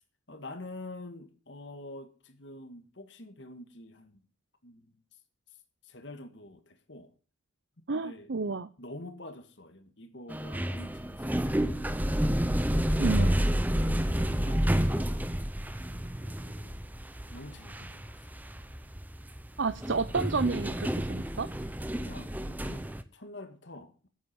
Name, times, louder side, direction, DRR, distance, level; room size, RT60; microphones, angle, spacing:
voice 1, 0.3-4.2 4.6-4.9 5.8-7.1 7.8-8.3 8.8-11.6 12.7-15.1 16.2-16.8 17.3-18.1 21.9-24.1, left 2 dB, 60° left, 1.7 m, -46 dB
voice 2, 7.9-8.7 13.0-13.3 19.6-21.5, right 4 dB, 60° right, 0.6 m, -30 dB
sound 1, 10.3-23.0, equal, 10° right, 0.7 m, -30 dB
9.7 x 8.7 x 8.2 m
head